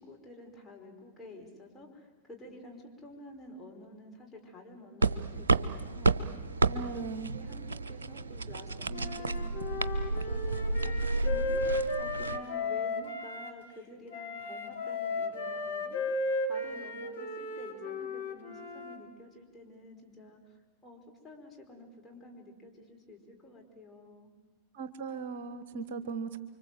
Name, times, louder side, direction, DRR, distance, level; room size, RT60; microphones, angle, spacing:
voice 1, 0.0-6.4 6.6-24.3 25.7-26.1, left 1 dB, 15° left, 0 dB, 5.3 m, -50 dB
sound 1, 5.0-12.4, right 3 dB, 70° right, 0.8 m, -31 dB
voice 2, 6.7-7.3 24.7-26.4, right 5 dB, 55° right, 11 dB, 1.3 m, -38 dB
Wind instrument woodwind instrument, 8.9-13.5 14.1-19.0, left 2 dB, 70° left, 3.1 m, -35 dB
29.5 x 24.5 x 7.8 m, 1.3 s
figure-of-eight pair, 90°, 0 cm